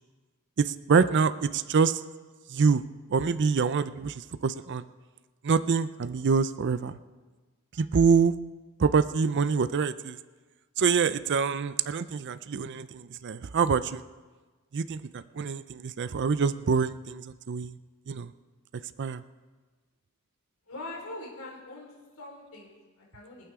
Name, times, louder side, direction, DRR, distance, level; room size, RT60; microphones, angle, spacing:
voice 1, 0.6-2.0 2.5-2.8 3.1-4.8 5.4-7.0 7.8-8.3 8.8-10.2 10.8-14.0 14.7-17.8 18.1-18.3 19.0-19.2, right 5 dB, 55° right, 13 dB, 0.5 m, -25 dB
voice 2, 20.6-23.5, left 2 dB, 80° left, -2 dB, 4.4 m, -43 dB
27.0 x 9.0 x 3.7 m, 1.3 s
head